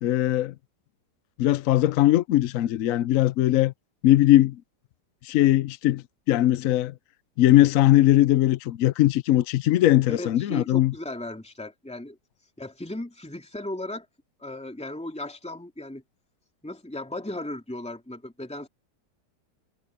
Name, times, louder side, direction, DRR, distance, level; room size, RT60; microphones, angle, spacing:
voice 1, 0.0-0.5 1.4-3.7 4.0-4.6 5.2-6.9 7.4-10.9, left 14 dB, 70° left, 0.8 m, -20 dB
voice 2, 10.1-12.2 12.6-14.1 14.4-16.0 16.6-18.7, left 1 dB, 5° left, 2.7 m, -36 dB
omnidirectional pair, 1.9 m